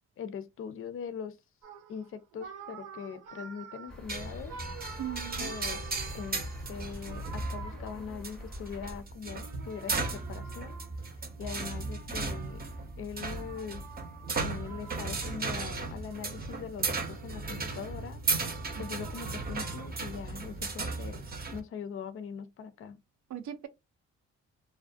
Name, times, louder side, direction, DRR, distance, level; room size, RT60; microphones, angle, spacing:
voice 1, 0.2-1.4 1.9-4.6 5.4-5.8 6.1-10.8 11.4-12.7 13.0-13.9 14.3-18.2 18.8-23.0, left 7 dB, 45° left, 0.5 m, -41 dB
sound 1, 1.6-8.6 9.2-15.6 16.0-17.2 17.6-19.9, right 6 dB, 85° right, 1.0 m, -49 dB
sound 2, 3.9-9.0, left 1 dB, ahead, 0.7 m, -45 dB
sound 3, 4.1-21.6, right 3 dB, 30° right, 0.7 m, -36 dB
voice 2, 5.0-5.5 18.7-18.9 23.3-23.7, right 11 dB, 70° right, 0.5 m, -38 dB
2.3 x 2.2 x 2.5 m
cardioid pair, 90°, 30 cm